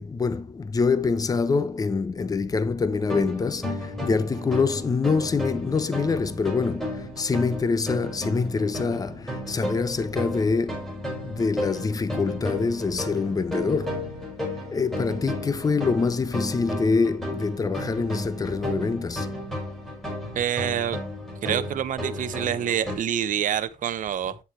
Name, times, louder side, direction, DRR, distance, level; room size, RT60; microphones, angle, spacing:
voice 1, 0.0-10.8 11.2-14.0 14.7-19.3, left 4 dB, 20° left, 0.8 m, -25 dB
sound 1, 3.0-23.0, left 1 dB, 5° left, 4.8 m, -33 dB
voice 2, 20.3-21.0 21.4-24.4, right 10 dB, 50° right, 0.8 m, -27 dB
8.4 x 7.2 x 3.2 m
cardioid pair, 110°, 17 cm